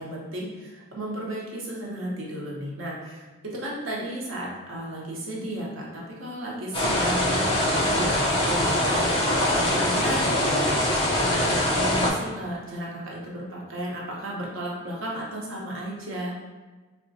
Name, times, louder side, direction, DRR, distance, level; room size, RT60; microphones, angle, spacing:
voice 1, 0.0-16.3, right 1 dB, 85° right, -3 dB, 0.8 m, -34 dB
sound 1, 6.7-12.1, left 1 dB, 25° left, 0.5 m, -23 dB
3.5 x 2.2 x 2.6 m, 1.3 s
head